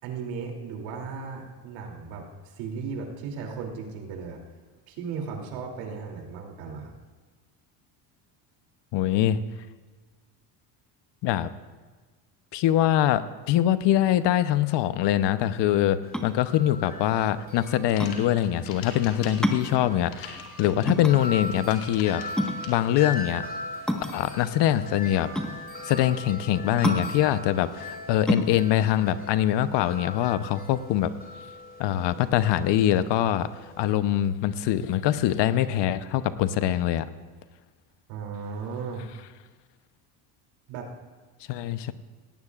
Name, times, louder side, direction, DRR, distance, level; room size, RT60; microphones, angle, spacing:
voice 1, 0.0-4.4 4.9-6.9 38.1-39.1 40.7-40.9, right 5 dB, 80° right, 0 dB, 3.0 m, -36 dB
voice 2, 8.9-9.4 11.2-11.5 12.5-13.2 13.5-22.2 22.7-23.4 24.1-25.3 25.8-31.1 31.8-33.5 33.8-37.1 41.5-41.9, left 12 dB, 60° left, 13 dB, 0.9 m, -23 dB
Wind chime, 16.0-33.9, left 2 dB, 20° left, 5.3 m, -40 dB
sound 1, 16.1-30.3, equal, ahead, 1.3 m, -31 dB
sound 2, 17.6-22.7, left 7 dB, 85° left, 2.7 m, -44 dB
17.5 x 17.5 x 2.5 m, 1.4 s
supercardioid pair, 90°, 47 cm